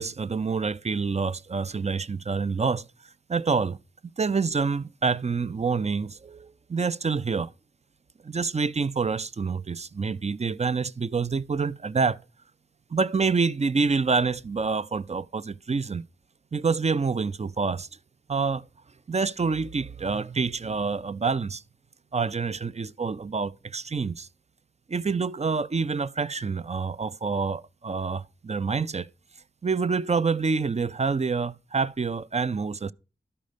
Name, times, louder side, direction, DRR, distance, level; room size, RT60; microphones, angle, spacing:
voice 1, 0.0-2.9 3.3-3.8 4.2-7.5 8.2-12.2 12.9-16.0 16.5-17.9 18.3-18.7 19.1-21.6 22.1-24.3 24.9-29.1 29.6-32.9, right 4 dB, 35° right, 0.4 m, -27 dB
12.5 x 5.3 x 5.0 m
wide cardioid pair, 75°, 20 cm